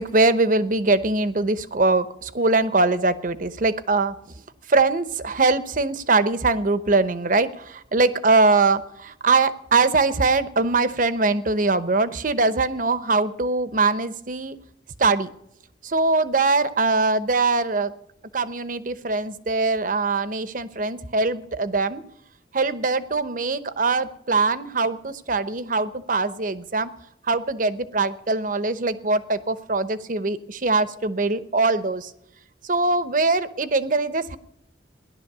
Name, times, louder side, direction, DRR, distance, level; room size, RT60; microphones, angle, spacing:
voice 1, 0.0-4.1 4.7-14.6 15.0-15.3 15.8-17.9 18.3-22.0 22.5-26.9 27.3-32.1 32.6-34.4, right 3 dB, 45° right, 14 dB, 0.9 m, -22 dB
17.0 x 11.0 x 6.7 m, 0.78 s
head